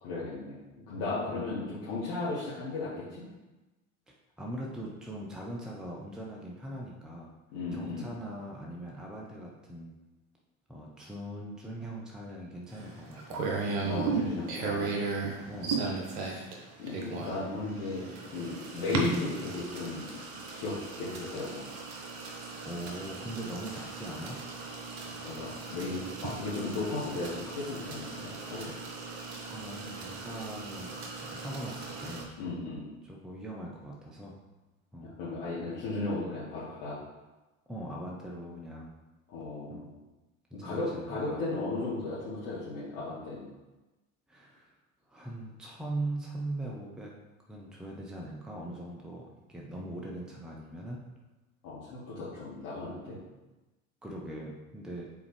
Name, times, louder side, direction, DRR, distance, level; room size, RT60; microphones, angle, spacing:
voice 1, 0.0-3.2 7.5-8.1 13.8-14.9 16.2-16.4 16.8-20.1 20.5-21.7 25.0-28.7 32.4-32.8 35.0-37.0 39.3-39.9 40.6-43.5 51.6-53.2, left 3 dB, 50° left, -10 dB, 1.9 m, -35 dB
voice 2, 4.4-7.3 7.7-9.9 10.7-13.4 15.4-15.7 22.6-24.4 29.5-32.3 33.0-34.4 34.9-35.1 37.7-38.9 39.7-39.9 40.5-41.4 44.3-44.7 45.1-47.2 47.5-51.0 54.0-55.1, right 1 dB, ahead, -2 dB, 0.8 m, -41 dB
sound 1, 12.7-32.2, right 4 dB, 55° right, 1.3 m, -37 dB
7.2 x 4.2 x 3.3 m, 1.1 s
figure-of-eight pair, 70°, 42 cm